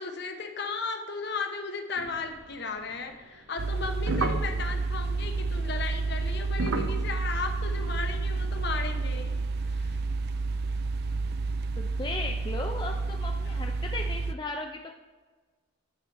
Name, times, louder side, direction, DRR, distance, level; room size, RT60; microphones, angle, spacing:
voice 1, 0.0-9.4 9.7-10.0, left 4 dB, 50° left, 6 dB, 0.8 m, -35 dB
sound 1, 2.0-3.1 3.6-8.2, right 2 dB, 75° right, 0.7 m, -36 dB
sound 2, 3.6-14.3, right 3 dB, 50° right, 0.3 m, -30 dB
voice 2, 11.8-15.0, left 3 dB, 20° left, 2 dB, 0.4 m, -36 dB
9.7 x 5.0 x 4.1 m, 1.3 s
head